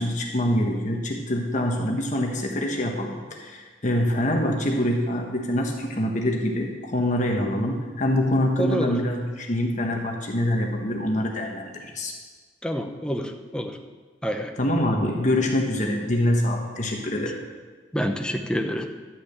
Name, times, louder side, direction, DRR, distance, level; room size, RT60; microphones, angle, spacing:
voice 1, 0.0-12.1 14.6-17.4, left 1 dB, 45° left, 1 dB, 1.3 m, -25 dB
voice 2, 8.6-9.0 12.6-13.8 14.2-14.5 17.9-18.9, equal, 5° left, 4 dB, 0.8 m, -27 dB
12.0 x 6.1 x 8.1 m, 1.4 s
head